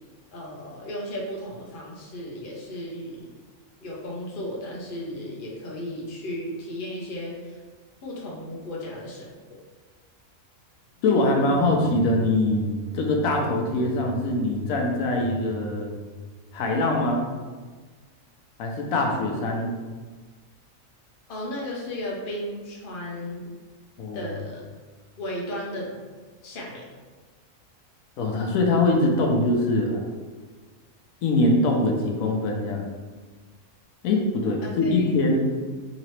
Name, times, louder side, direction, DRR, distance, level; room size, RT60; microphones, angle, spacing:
voice 1, 0.3-3.3 3.8-7.6 8.0-9.3 21.3-23.5 24.1-24.6 25.2-25.9 26.4-26.9 34.8-35.1, left 1 dB, 45° left, -3 dB, 0.8 m, -35 dB
voice 2, 11.0-12.6 12.9-15.9 16.5-17.2 18.6-19.7 24.0-24.3 28.2-30.1 31.2-32.8 34.0-35.5, left 2 dB, 90° left, 1 dB, 1.1 m, -23 dB
sound 1, 11.0-17.0, right 3 dB, 10° right, 0.4 m, -38 dB
3.9 x 2.9 x 3.1 m, 1.4 s
omnidirectional pair, 1.4 m